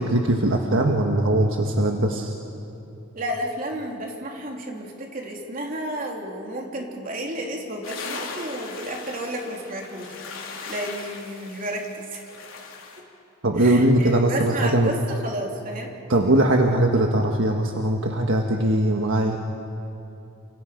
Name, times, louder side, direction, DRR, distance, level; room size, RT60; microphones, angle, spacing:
voice 1, 0.0-2.3 13.4-14.9 16.1-19.4, right 1 dB, 70° right, 2 dB, 1.5 m, -20 dB
voice 2, 3.1-12.2 13.6-15.9, right 1 dB, 45° right, 0 dB, 3.3 m, -32 dB
sound 1, 7.8-13.0, left 4 dB, 80° left, 3.6 m, -38 dB
30.0 x 27.0 x 5.2 m, 2.8 s
head